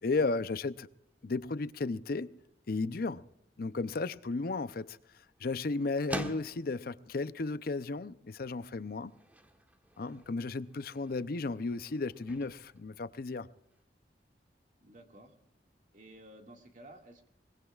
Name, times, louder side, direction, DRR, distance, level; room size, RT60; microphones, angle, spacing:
voice 1, 0.0-0.9 1.2-2.4 2.7-3.2 3.6-5.0 5.4-9.1 10.0-13.5, left 3 dB, 55° left, 0.5 m, -34 dB
sound 1, 4.1-13.8, right 1 dB, 10° right, 1.2 m, -48 dB
voice 2, 14.8-15.3 15.9-17.3, right 1 dB, 45° right, 2.0 m, -53 dB
22.5 x 20.5 x 2.4 m
head